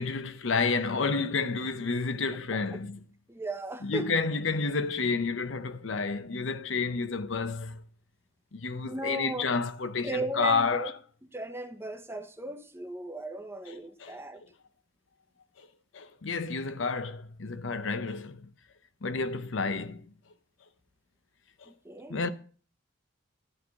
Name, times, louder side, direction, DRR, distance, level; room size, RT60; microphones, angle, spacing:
voice 1, 0.0-3.0 3.8-7.8 8.5-10.9 13.7-14.1 15.6-15.7 15.9-18.5 19.0-20.1 21.6-21.7 22.1-22.3, left 4 dB, 70° left, 0.7 m, -30 dB
voice 2, 3.3-4.2 8.8-9.5 10.0-10.9 11.3-14.4 21.6-22.2, right 2 dB, 10° right, 0.9 m, -36 dB
12.0 x 4.6 x 8.3 m
head